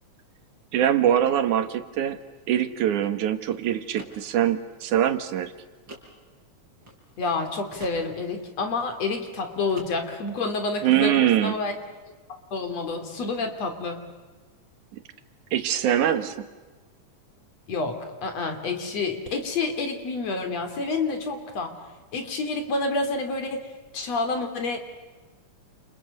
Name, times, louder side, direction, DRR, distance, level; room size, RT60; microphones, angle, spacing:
voice 1, 0.7-2.2 2.5-5.5 10.8-11.6 14.9-15.0 15.5-16.5, right 10 dB, 90° right, 10 dB, 3.0 m, -23 dB
sound 1, 2.1-7.4 7.7-9.4 9.7-10.4, right 1 dB, 35° right, 5.7 m, -48 dB
voice 2, 7.2-11.7 12.5-14.0 17.7-21.8 22.1-24.8, left 3 dB, 60° left, 6 dB, 4.2 m, -29 dB
29.5 x 29.5 x 6.7 m, 1.3 s
omnidirectional pair, 3.4 m